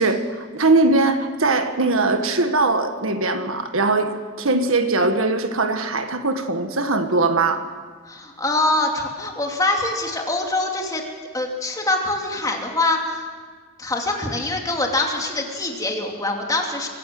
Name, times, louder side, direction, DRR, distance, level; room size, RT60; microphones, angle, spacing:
voice 1, 0.0-7.7, right 3 dB, 70° right, 7 dB, 1.6 m, -21 dB
voice 2, 8.0-11.0 11.3-13.2 13.8-16.9, left 2 dB, 15° left, 1 dB, 2.8 m, -24 dB
25.5 x 15.5 x 7.9 m, 1.6 s
head